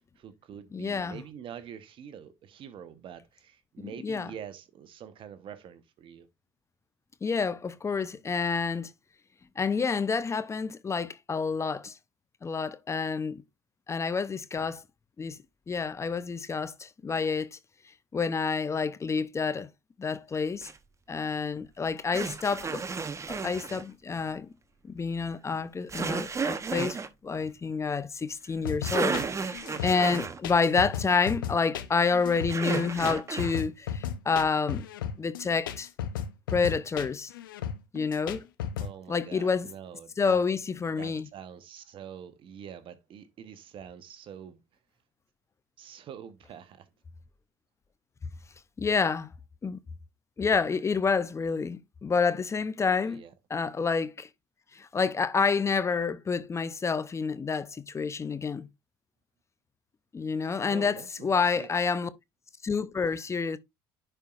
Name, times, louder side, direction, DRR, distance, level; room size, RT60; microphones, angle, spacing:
voice 1, 0.2-6.3 38.8-40.4 41.0-44.6 45.8-46.9 52.8-53.3 60.4-61.7, right 8 dB, 55° right, 1.1 m, -45 dB
voice 2, 0.7-1.2 3.8-4.3 7.2-8.9 9.6-12.0 12.4-13.4 13.9-14.8 15.2-15.4 15.7-17.6 18.1-19.7 20.0-20.7 21.1-22.8 23.3-24.5 24.9-29.2 29.4-34.9 35.2-35.9 36.5-37.3 37.9-38.4 39.1-39.7 40.2-41.3 48.8-49.3 49.6-49.8 50.4-53.2 53.5-54.3 54.7-58.7 60.1-62.1 62.6-63.6, left 5 dB, 25° left, 0.7 m, -28 dB
sound 1, 20.6-20.8 22.1-23.8 25.9-27.1 28.5-28.6 28.8-30.4 32.5-33.6, right 5 dB, 25° right, 0.9 m, -32 dB
sound 2, 28.7-38.9, left 8 dB, 85° left, 0.6 m, -35 dB
10.0 x 4.5 x 2.5 m
hypercardioid pair, 70°, 11 cm